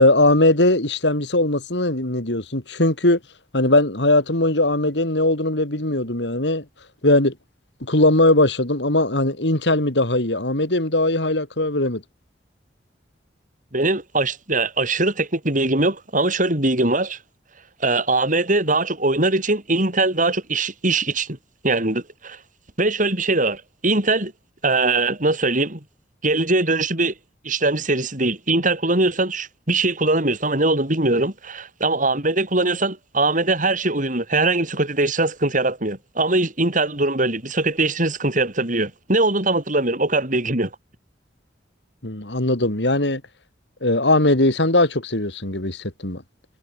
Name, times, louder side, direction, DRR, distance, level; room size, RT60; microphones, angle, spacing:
voice 1, 0.0-3.2 3.5-6.6 7.0-7.3 7.8-12.0 42.0-43.2 43.8-46.2, left 2 dB, 75° left, 4.2 m, -19 dB
voice 2, 13.7-17.2 17.8-21.4 21.6-22.4 22.8-24.3 24.6-25.8 26.2-27.1 27.4-40.7, right 2 dB, 45° right, 7.7 m, -21 dB
head